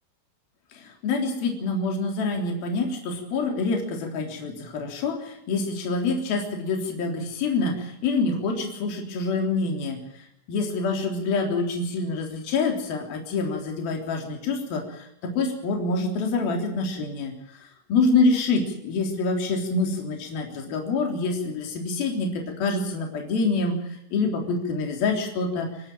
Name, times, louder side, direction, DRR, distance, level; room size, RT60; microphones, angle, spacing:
voice 1, 0.7-10.0 10.5-17.3 17.9-23.8 24.1-25.9, left 3 dB, 50° left, 2 dB, 5.0 m, -26 dB
27.0 x 12.0 x 9.1 m, 0.77 s
omnidirectional pair, 5.8 m